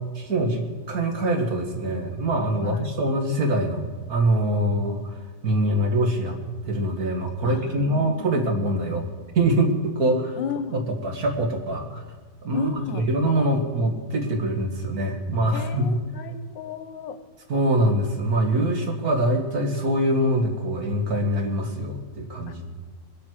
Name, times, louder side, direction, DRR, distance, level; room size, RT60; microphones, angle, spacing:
voice 1, 0.1-6.4 6.7-9.0 9.3-10.3 10.7-12.0 12.4-16.0 17.5-22.7, right 1 dB, 55° right, 3 dB, 2.1 m, -24 dB
voice 2, 7.4-8.4 10.1-10.8 12.5-13.1 15.5-17.2 22.5-22.6, left 6 dB, 90° left, 10 dB, 1.6 m, -34 dB
20.5 x 8.7 x 6.4 m, 1.5 s
omnidirectional pair, 2.0 m